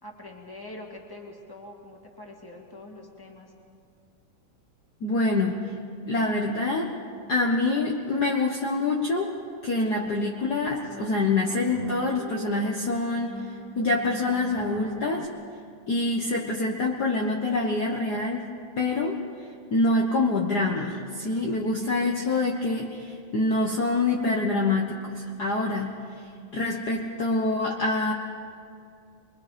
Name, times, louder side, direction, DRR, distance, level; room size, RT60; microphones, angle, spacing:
voice 1, 0.0-3.5, left 1 dB, 10° left, 0 dB, 2.0 m, -44 dB
voice 2, 5.0-5.6 6.1-6.9 7.3-9.3 9.6-13.4 13.7-15.3 15.9-18.5 18.8-19.2 19.7-26.0 26.5-28.1, left 2 dB, 55° left, -1 dB, 1.1 m, -26 dB
sound 1, 9.9-10.0 10.3-15.3, right 4 dB, 65° right, 2.1 m, -43 dB
28.5 x 22.5 x 5.2 m, 2.3 s
omnidirectional pair, 3.7 m